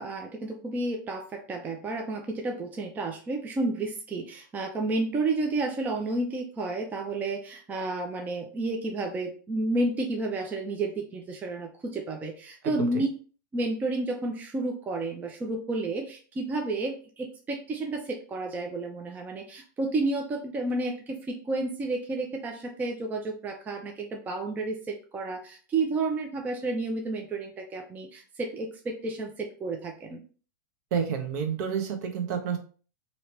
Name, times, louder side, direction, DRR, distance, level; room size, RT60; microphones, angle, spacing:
voice 1, 0.0-13.1 13.5-30.2, right 2 dB, 15° right, 2 dB, 0.5 m, -31 dB
voice 2, 30.9-32.6, right 7 dB, 55° right, 5 dB, 0.8 m, -29 dB
2.9 x 2.8 x 3.1 m, 0.39 s
hypercardioid pair, 130°, 11 cm